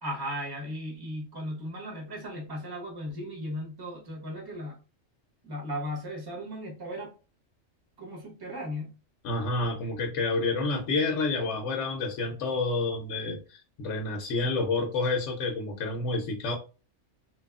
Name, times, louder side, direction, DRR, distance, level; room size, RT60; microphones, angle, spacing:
voice 1, 0.0-4.8 5.4-7.1 8.0-8.9, equal, 20° right, -1 dB, 0.7 m, -36 dB
voice 2, 9.2-16.5, left 3 dB, 70° left, 2 dB, 0.9 m, -29 dB
2.9 x 2.2 x 2.3 m, 0.33 s
omnidirectional pair, 1.3 m